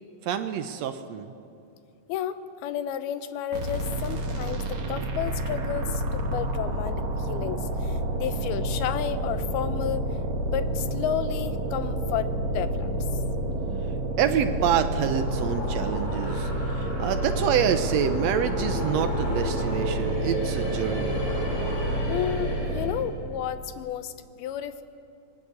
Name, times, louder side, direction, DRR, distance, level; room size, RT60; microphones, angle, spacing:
voice 1, 0.2-1.3 14.2-21.2, right 8 dB, 90° right, 8 dB, 1.4 m, -27 dB
voice 2, 2.1-10.1 10.4-12.9 22.1-24.8, left 10 dB, 80° left, 12 dB, 2.9 m, -32 dB
sound 1, 3.5-23.1, right 1 dB, 50° right, 3.2 m, -29 dB
sound 2, 14.9-23.1, equal, 50° left, 5.4 m, -34 dB
27.0 x 20.5 x 8.2 m, 2.5 s
omnidirectional pair, 4.4 m